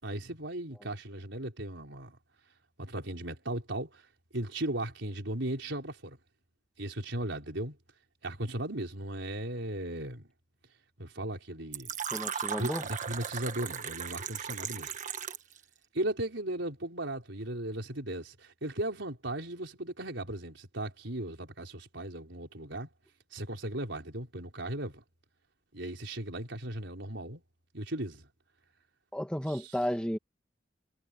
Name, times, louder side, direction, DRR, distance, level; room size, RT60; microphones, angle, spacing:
voice 1, 0.0-2.2 2.8-4.0 4.3-6.2 6.8-7.8 8.2-10.3 11.0-11.9 12.6-14.9 15.9-22.9 23.3-25.0 25.7-27.4 27.7-28.3, right 1 dB, 70° right, 5.4 m, -36 dB
Fill (with liquid), 11.7-15.6, right 7 dB, 45° right, 1.4 m, -37 dB
voice 2, 12.1-12.8 29.1-30.2, equal, 5° left, 1.7 m, -33 dB
head